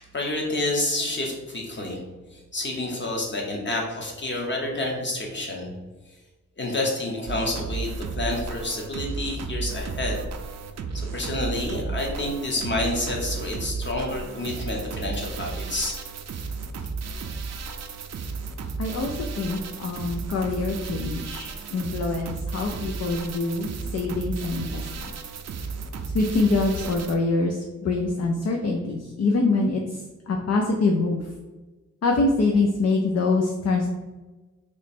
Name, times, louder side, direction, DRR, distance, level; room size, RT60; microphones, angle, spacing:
voice 1, 0.0-2.0 2.3-5.7 6.6-10.2 10.9-16.0, left 2 dB, 35° left, -1 dB, 1.0 m, -29 dB
sound 1, 7.3-27.2, right 4 dB, 60° right, 0.4 m, -33 dB
voice 2, 18.8-25.1 26.1-31.2 32.0-33.9, left 3 dB, 55° left, 1 dB, 0.5 m, -25 dB
3.1 x 3.1 x 4.2 m, 1.2 s
wide cardioid pair, 120°, 30 cm